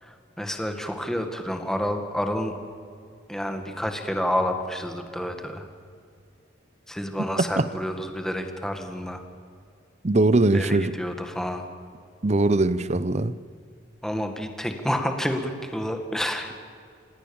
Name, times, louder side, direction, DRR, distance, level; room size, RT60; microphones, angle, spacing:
voice 1, 0.0-2.6 3.3-5.7 6.9-9.2 10.5-11.7 14.0-16.5, equal, 5° left, 1.9 m, -29 dB
voice 2, 7.4-7.7 10.0-10.9 12.2-13.4, right 2 dB, 40° right, 0.7 m, -21 dB
27.0 x 18.0 x 7.2 m
head